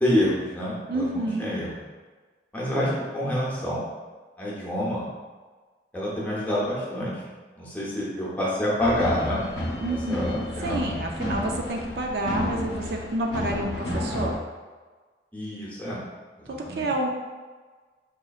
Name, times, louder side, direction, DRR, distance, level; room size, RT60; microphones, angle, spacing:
voice 1, 0.0-1.8 2.5-3.8 4.4-5.0 5.9-7.2 7.6-9.4 9.9-11.0 15.3-16.0 16.4-16.9, left 1 dB, 10° left, -7 dB, 0.8 m, -27 dB
voice 2, 0.9-1.5 9.8-14.3 16.5-17.1, right 1 dB, 60° right, 1 dB, 0.4 m, -29 dB
sound 1, 8.8-14.4, left 1 dB, 75° left, 0.6 m, -31 dB
4.8 x 3.0 x 2.3 m, 1.4 s
head